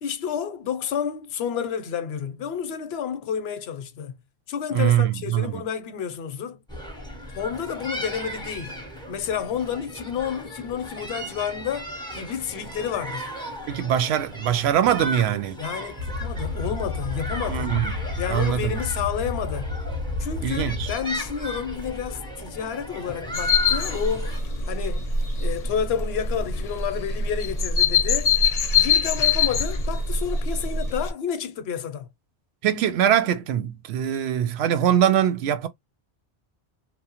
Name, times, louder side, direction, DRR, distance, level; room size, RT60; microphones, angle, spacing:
voice 1, 0.0-4.2 4.5-6.6 7.3-8.8 9.1-13.3 15.6-17.7 18.2-19.7 20.2-24.3 24.7-25.0 25.4-28.4 28.7-32.1, left 8 dB, 80° left, 0.8 m, -30 dB
voice 2, 4.7-5.6 13.7-15.6 17.5-17.9 18.3-18.8 20.4-20.9 32.6-35.7, right 10 dB, 90° right, 0.8 m, -22 dB
sound 1, 6.7-24.4, equal, 5° left, 0.6 m, -36 dB
sound 2, 16.0-21.0, left 3 dB, 35° right, 0.6 m, -31 dB
sound 3, 23.3-31.1, left 5 dB, 50° left, 0.6 m, -24 dB
2.9 x 2.1 x 2.8 m
omnidirectional pair, 1.0 m